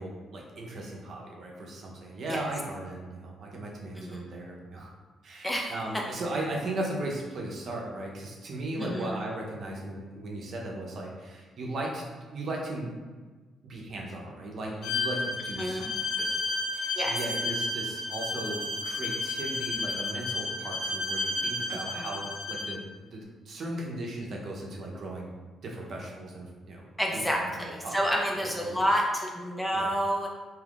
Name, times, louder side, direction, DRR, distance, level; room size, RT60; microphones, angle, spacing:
voice 1, 0.0-4.9 5.2-12.9 13.6-16.4 16.7-25.3 25.6-26.9 27.1-28.1 28.4-28.9 29.7-29.9, right 1 dB, 60° right, -2 dB, 0.7 m, -37 dB
voice 2, 4.0-4.3 5.4-5.7 8.8-9.2 15.6-15.9 17.0-17.2 21.7-22.1 27.0-30.3, equal, 5° left, -1 dB, 0.5 m, -29 dB
Bowed string instrument, 14.8-22.7, left 2 dB, 75° left, 0.6 m, -32 dB
3.5 x 2.8 x 2.4 m, 1.3 s
cardioid pair, 90°, 0 cm